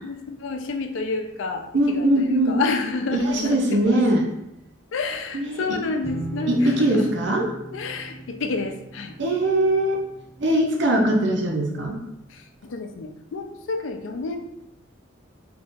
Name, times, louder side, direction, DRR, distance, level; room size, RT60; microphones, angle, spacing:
voice 1, 0.0-4.0 4.9-7.1 7.7-9.2 12.3-14.4, left 4 dB, 75° left, 5 dB, 0.4 m, -30 dB
voice 2, 1.7-2.6 3.1-4.3 5.3-5.8 6.5-7.5 9.2-10.0 10.4-12.0, right 1 dB, 60° right, 1 dB, 0.6 m, -21 dB
sound 1, 6.0-11.6, right 2 dB, 10° left, 0.5 m, -38 dB
3.6 x 2.8 x 2.6 m, 0.84 s
head